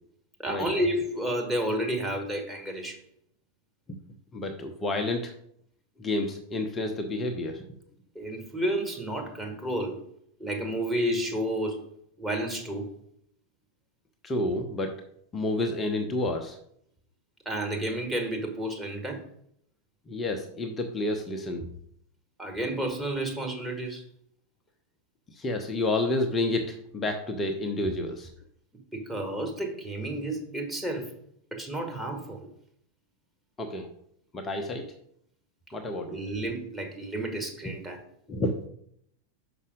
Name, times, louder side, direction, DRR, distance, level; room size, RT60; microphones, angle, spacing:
voice 1, 0.4-3.0 8.1-10.0 10.4-11.8 12.2-12.9 17.4-19.2 22.4-24.0 28.9-31.1 31.5-32.5 36.0-38.0, right 1 dB, 5° right, 1 dB, 1.7 m, -31 dB
voice 2, 4.3-5.3 6.0-7.6 14.2-14.9 15.3-16.6 20.1-21.7 25.3-28.3 33.6-33.9 34.3-34.9 35.7-36.2 38.3-38.5, left 2 dB, 20° left, 4 dB, 0.9 m, -29 dB
5.9 x 5.5 x 5.0 m, 0.69 s
figure-of-eight pair, 90°, 0 cm